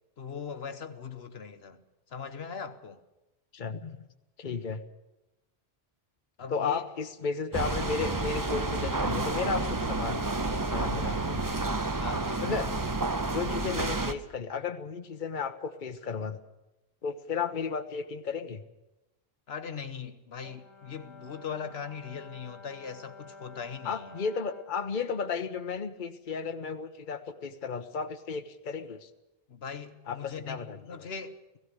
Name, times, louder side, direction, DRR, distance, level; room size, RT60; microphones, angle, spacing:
voice 1, 0.2-3.0 6.4-6.8 12.0-12.4 19.5-24.2 29.5-31.6, left 6 dB, 80° left, 1.3 m, -40 dB
voice 2, 3.5-4.0 4.4-4.8 6.5-11.5 12.4-12.7 13.3-16.4 17.0-18.6 23.8-29.1 30.1-31.1, left 5 dB, 50° left, 1.1 m, -34 dB
sound 1, 7.5-14.1, right 3 dB, 20° right, 0.8 m, -30 dB
Brass instrument, 20.4-24.8, left 3 dB, 30° left, 2.0 m, -50 dB
17.0 x 16.0 x 9.7 m
omnidirectional pair, 1.0 m